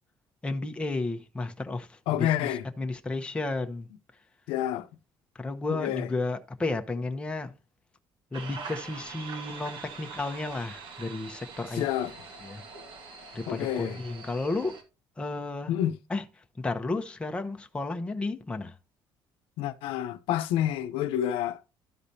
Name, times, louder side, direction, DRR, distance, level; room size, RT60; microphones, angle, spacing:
voice 1, 0.4-2.3 2.8-3.9 5.3-7.5 8.3-11.8 12.4-12.6 13.3-14.8 15.2-15.7 16.1-16.2 16.6-18.7, left 2 dB, 10° left, 0.9 m, -32 dB
voice 2, 2.1-2.6 4.5-4.9 5.7-6.1 11.7-12.1 13.5-14.0 15.7-16.0 19.6-21.6, left 11 dB, 90° left, 0.7 m, -28 dB
sound 1, 8.3-14.8, right 4 dB, 65° right, 1.8 m, -44 dB
13.0 x 4.9 x 2.7 m
cardioid pair, 135°, 9 cm